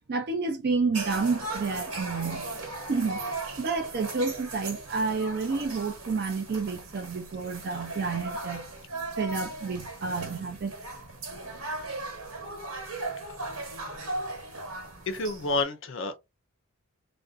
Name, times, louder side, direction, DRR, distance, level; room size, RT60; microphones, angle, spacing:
voice 1, 0.1-2.5 2.9-3.2 3.6-8.7 9.2-10.7, right 4 dB, 45° right, 0.4 m, -30 dB
sound 1, 0.9-15.6, right 2 dB, 75° right, 1.2 m, -37 dB
voice 2, 15.1-16.2, left 2 dB, 60° left, 0.5 m, -29 dB
2.5 x 2.1 x 2.4 m
head